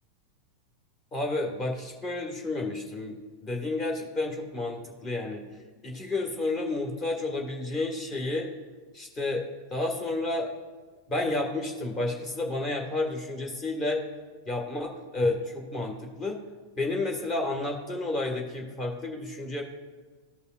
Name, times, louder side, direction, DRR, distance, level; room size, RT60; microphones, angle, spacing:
voice 1, 1.1-3.2 3.4-5.5 5.8-8.5 8.9-9.4 9.7-10.5 11.1-14.0 14.4-16.4 16.8-19.6, left 2 dB, 25° left, 2 dB, 1.6 m, -31 dB
14.5 x 5.4 x 2.4 m, 1.4 s
figure-of-eight pair, 90°, 0 cm